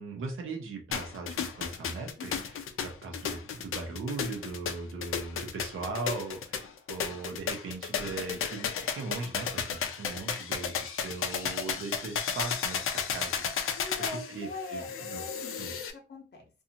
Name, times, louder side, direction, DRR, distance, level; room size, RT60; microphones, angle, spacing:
voice 1, 0.0-2.3 2.8-13.4 14.1-15.2 15.6-15.7, right 3 dB, 75° right, 2 dB, 0.9 m, -39 dB
sound 1, 0.9-15.9, left 7 dB, 80° left, 0.5 m, -34 dB
voice 2, 13.7-15.6 15.9-16.5, left 3 dB, 55° left, 1 dB, 0.9 m, -41 dB
2.7 x 2.4 x 2.8 m, 0.32 s
wide cardioid pair, 170°, 21 cm